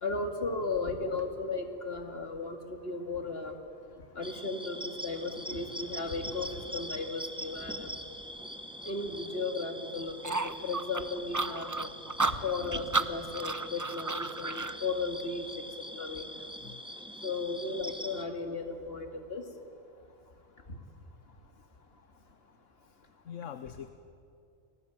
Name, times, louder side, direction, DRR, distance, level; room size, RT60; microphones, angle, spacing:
voice 1, 0.0-3.5 4.2-7.9 8.8-11.9 12.3-15.4 16.0-16.4 17.2-19.4, left 3 dB, 50° left, 5 dB, 2.5 m, -35 dB
sound 1, 4.2-18.2, equal, 5° right, 1.2 m, -43 dB
sound 2, 10.2-14.8, right 3 dB, 20° right, 0.6 m, -32 dB
voice 2, 23.3-23.9, left 8 dB, 70° left, 11 dB, 1.3 m, -43 dB
29.5 x 19.5 x 9.1 m, 2.6 s
omnidirectional pair, 1.3 m